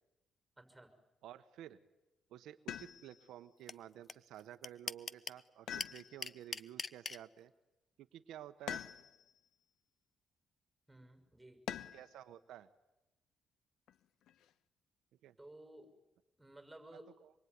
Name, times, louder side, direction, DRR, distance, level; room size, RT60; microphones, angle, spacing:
voice 1, 0.6-0.9 10.9-11.6 15.4-15.9 16.4-17.1, right 1 dB, 5° right, 7 dB, 6.3 m, -55 dB
voice 2, 1.2-1.8 2.3-7.5 8.0-8.8 11.9-12.7 15.2-15.3 17.2-17.3, right 11 dB, 85° right, 9 dB, 1.1 m, -52 dB
sound 1, 2.7-3.3 5.7-6.5 8.7-9.4 11.7-12.2 13.9-14.5, left 10 dB, 80° left, 1.1 m, -45 dB
sound 2, 3.7-3.8 4.1-4.2 4.4-5.4 5.8-7.2, left 4 dB, 35° left, 0.9 m, -40 dB
26.5 x 23.0 x 9.7 m, 0.97 s
cardioid pair, 90°, 0 cm